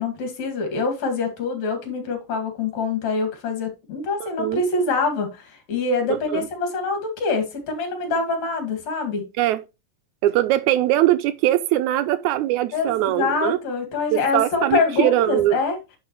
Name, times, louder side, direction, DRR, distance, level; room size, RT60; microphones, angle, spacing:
voice 1, 0.0-9.2 12.7-15.8, left 4 dB, 65° left, 3.3 m, -25 dB
voice 2, 4.2-4.6 6.3-6.4 9.4-9.6 10.2-13.6 14.1-15.6, right 14 dB, 80° right, 1.8 m, -21 dB
10.0 x 4.7 x 3.1 m
omnidirectional pair, 3.6 m